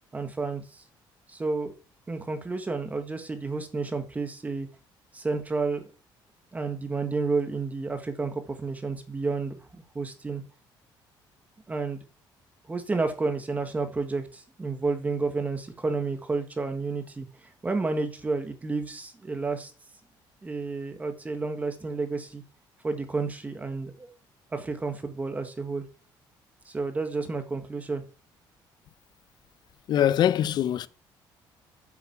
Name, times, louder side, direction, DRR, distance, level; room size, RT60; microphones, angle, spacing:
voice 1, 0.1-0.8 1.3-1.7 2.1-4.7 5.1-5.8 6.5-9.5 9.9-10.4 11.7-12.0 12.7-19.7 20.4-22.4 22.8-24.1 24.5-25.8 26.6-28.0, right 3 dB, 15° right, 1.6 m, -31 dB
voice 2, 29.9-30.9, left 10 dB, 55° left, 0.7 m, -23 dB
9.2 x 7.1 x 7.3 m
cardioid pair, 135°, 9 cm